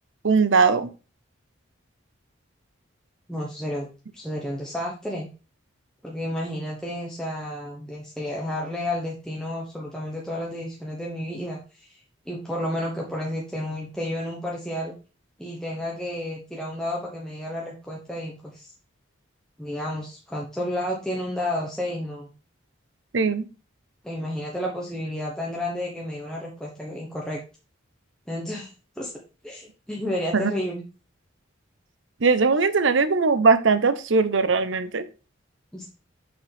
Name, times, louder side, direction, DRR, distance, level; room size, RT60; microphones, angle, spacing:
voice 1, 0.2-0.9 23.1-23.5 30.3-30.5 32.2-35.0, right 4 dB, 70° right, 13 dB, 0.7 m, -20 dB
voice 2, 3.3-3.9 4.1-5.3 6.0-12.0 12.3-14.9 15.4-18.7 19.6-22.3 24.0-27.4 28.3-28.7 29.0-29.1 29.4-30.8 35.7-35.9, left 1 dB, 5° left, -3 dB, 1.0 m, -31 dB
6.5 x 5.8 x 3.4 m, 0.33 s
head